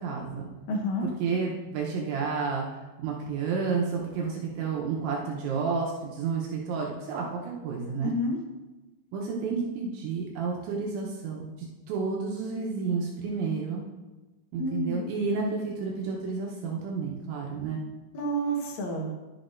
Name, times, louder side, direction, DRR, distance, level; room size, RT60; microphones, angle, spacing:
voice 1, 0.0-0.5 1.0-2.6 3.0-8.1 9.1-13.8 14.5-17.8, right 5 dB, 80° right, -2 dB, 3.2 m, -31 dB
voice 2, 0.7-1.1 8.0-8.4 14.6-15.0 18.1-19.1, equal, 80° left, -1 dB, 1.6 m, -29 dB
11.5 x 8.2 x 2.6 m, 1.1 s
omnidirectional pair, 5.4 m